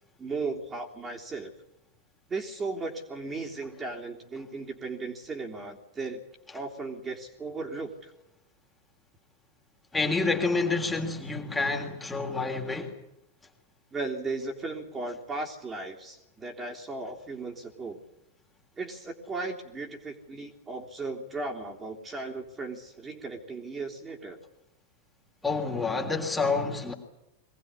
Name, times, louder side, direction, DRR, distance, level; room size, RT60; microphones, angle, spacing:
voice 1, 0.2-1.5 2.3-6.2 6.5-8.1 13.9-18.0 18.8-24.4, right 3 dB, 20° right, 1 dB, 3.4 m, -36 dB
voice 2, 9.9-12.9 25.4-26.9, left 3 dB, 10° left, 3 dB, 3.4 m, -28 dB
23.5 x 19.0 x 9.8 m, 0.85 s
figure-of-eight pair, 90°, 0 cm